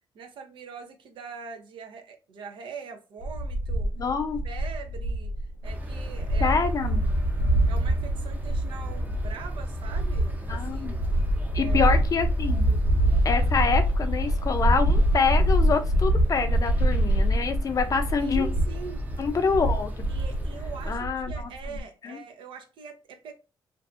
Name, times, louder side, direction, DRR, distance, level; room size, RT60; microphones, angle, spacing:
voice 1, 0.1-3.9 4.4-5.3 5.6-6.6 6.9-7.0 7.7-11.0 11.6-12.0 18.2-19.0 20.1-23.3, right 5 dB, 75° right, 0.6 m, -42 dB
sound 1, 3.2-21.8, right 1 dB, 90° left, 0.5 m, -25 dB
voice 2, 4.0-4.4 6.4-7.1 10.5-11.0 11.5-12.7 13.2-18.5 19.2-19.9 20.9-22.2, left 5 dB, 45° left, 0.5 m, -26 dB
sound 2, 5.6-20.9, equal, 20° right, 0.6 m, -36 dB
2.6 x 2.3 x 2.4 m
cardioid pair, 75°, 9 cm